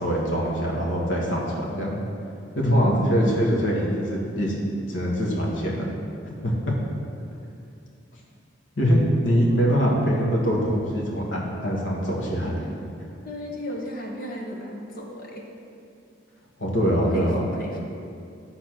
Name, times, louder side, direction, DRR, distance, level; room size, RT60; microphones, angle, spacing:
voice 1, 0.0-2.0 2.6-4.6 4.9-5.9 6.4-6.5 8.8-12.7 13.0-13.1 16.6-17.5, equal, 90° left, -3 dB, 1.7 m, -23 dB
voice 2, 2.7-3.2 9.5-9.7 13.2-15.4 16.9-17.8, left 1 dB, 50° left, -1 dB, 1.4 m, -35 dB
11.0 x 4.0 x 6.1 m, 2.5 s
head